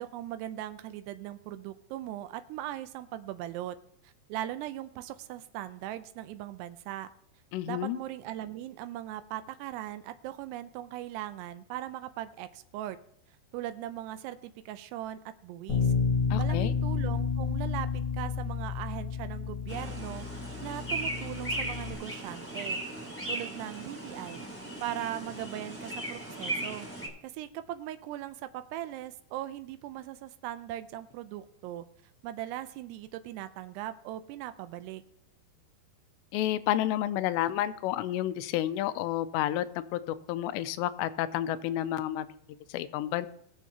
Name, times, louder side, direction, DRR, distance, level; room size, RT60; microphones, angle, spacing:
voice 1, 0.0-3.8 4.0-7.1 7.7-13.0 13.5-15.9 16.4-20.3 20.6-22.8 23.3-24.5 24.8-26.9 27.2-31.9 32.2-35.0, right 13 dB, 85° right, 11 dB, 2.7 m, -39 dB
voice 2, 7.5-8.0 16.3-16.7 36.3-42.4 42.7-43.3, left 13 dB, 85° left, 13 dB, 2.7 m, -30 dB
Bass guitar, 15.7-21.9, left 5 dB, 50° left, 1.4 m, -31 dB
sound 1, 19.7-27.1, right 2 dB, 5° left, 1.7 m, -37 dB
21.0 x 7.1 x 2.8 m, 0.69 s
omnidirectional pair, 4.9 m